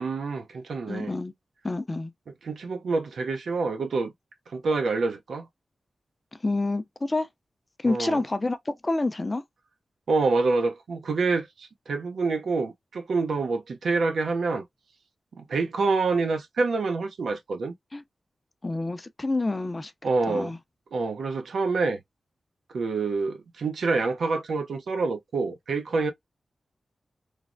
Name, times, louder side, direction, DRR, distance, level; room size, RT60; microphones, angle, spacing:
voice 1, 0.0-1.1 2.4-4.1 4.5-5.5 7.9-8.2 10.1-14.6 15.4-17.7 20.0-20.5 20.9-22.0 22.7-26.1, right 3 dB, 85° right, 0.5 m, -27 dB
voice 2, 0.9-1.3 1.6-2.1 6.4-7.3 7.8-9.4 17.9-18.0 18.6-19.9 20.3-20.6, left 2 dB, 25° left, 0.4 m, -28 dB
3.2 x 2.0 x 2.5 m
wide cardioid pair, 95°, 0 cm